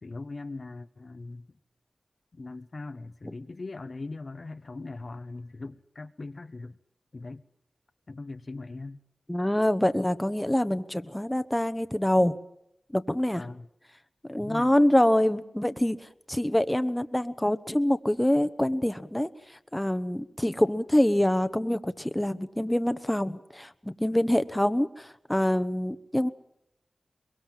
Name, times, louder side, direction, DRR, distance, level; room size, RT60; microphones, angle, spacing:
voice 1, 0.0-1.5 2.3-6.8 7.1-7.4 8.1-9.0 13.4-13.7 14.4-14.7, left 3 dB, 55° left, 9 dB, 1.1 m, -40 dB
voice 2, 9.3-12.4 12.9-13.4 14.3-26.3, left 1 dB, 10° left, 11 dB, 1.2 m, -25 dB
23.0 x 22.0 x 7.5 m, 0.79 s
cardioid pair, 50°, 0 cm